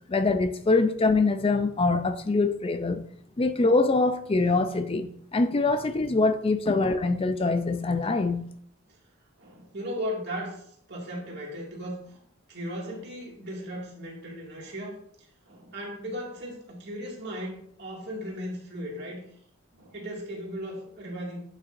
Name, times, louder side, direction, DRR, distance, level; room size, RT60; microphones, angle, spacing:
voice 1, 0.1-3.0 3.4-8.5, left 3 dB, 25° left, 0.4 m, -24 dB
voice 2, 9.4-12.2 12.5-15.0 15.5-19.2 19.7-21.4, equal, 50° right, 2.1 m, -36 dB
8.7 x 6.4 x 2.6 m
head